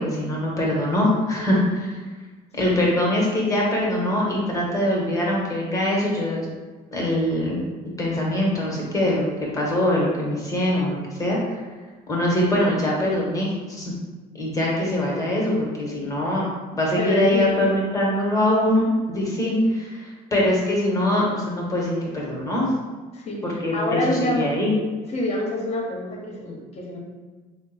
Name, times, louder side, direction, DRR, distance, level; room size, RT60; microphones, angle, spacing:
voice 1, 0.0-2.0 2.5-6.5 6.9-7.6 8.0-9.2 9.5-11.6 12.1-13.9 14.3-16.5 16.7-22.7 23.4-24.7, left 1 dB, 20° left, -4 dB, 1.2 m, -23 dB
voice 2, 17.0-17.7 23.1-23.4 23.7-24.5 25.1-27.0, left 1 dB, 40° left, -1 dB, 1.0 m, -26 dB
3.5 x 2.1 x 4.1 m, 1.3 s
cardioid pair, 110°, 17 cm